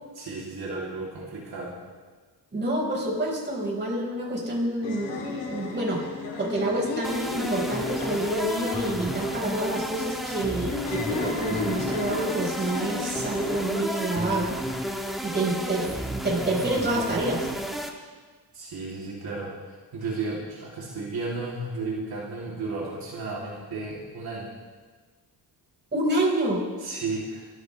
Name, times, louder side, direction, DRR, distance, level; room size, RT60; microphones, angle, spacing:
voice 1, 0.1-1.8 18.5-24.5 26.8-27.5, right 3 dB, 65° right, -5 dB, 3.0 m, -33 dB
voice 2, 2.5-6.0 6.4-14.5 15.2-15.9 16.2-17.5 25.9-26.6, right 1 dB, 25° right, -3 dB, 5.0 m, -27 dB
sound 1, 4.8-14.0, left 4 dB, 85° left, 3.1 m, -35 dB
sound 2, 7.0-17.9, equal, ahead, 1.4 m, -32 dB
24.0 x 13.0 x 3.3 m, 1.4 s
cardioid pair, 120°, 41 cm